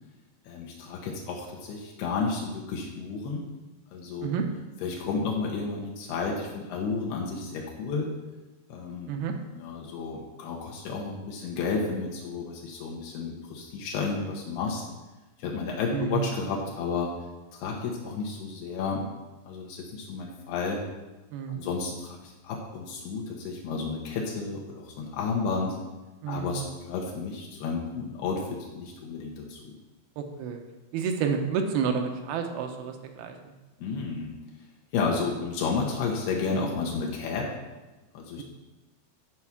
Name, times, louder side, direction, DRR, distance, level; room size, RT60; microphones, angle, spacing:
voice 1, 0.5-3.4 3.9-4.3 4.8-8.1 8.7-9.1 9.5-14.8 15.4-17.1 17.5-19.0 19.5-20.8 21.5-25.8 26.3-28.5 28.7-29.7 33.8-34.3 34.9-37.6 38.1-38.4, left 4 dB, 80° left, -2 dB, 3.1 m, -32 dB
voice 2, 15.9-16.3 21.3-21.7 26.2-26.6 30.2-30.6 30.9-33.5 38.4-38.5, right 6 dB, 80° right, 5 dB, 2.6 m, -30 dB
11.0 x 4.8 x 5.9 m, 1.1 s
omnidirectional pair, 4.7 m